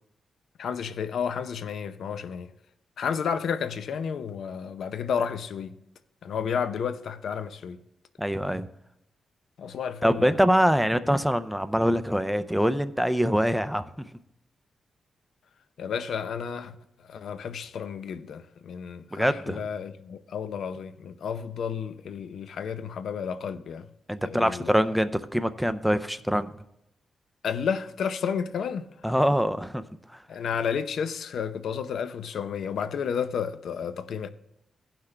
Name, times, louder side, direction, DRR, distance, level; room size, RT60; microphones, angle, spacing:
voice 1, 0.6-2.5 3.0-5.8 6.2-7.8 9.6-10.4 15.8-16.7 17.1-23.9 24.2-24.7 27.4-28.9 30.3-34.3, left 7 dB, 70° left, 0.7 m, -31 dB
voice 2, 8.2-8.7 10.0-13.9 19.1-19.6 24.1-26.5 29.0-29.8, equal, ahead, 0.4 m, -24 dB
17.0 x 5.9 x 3.3 m
wide cardioid pair, 155°, 0 cm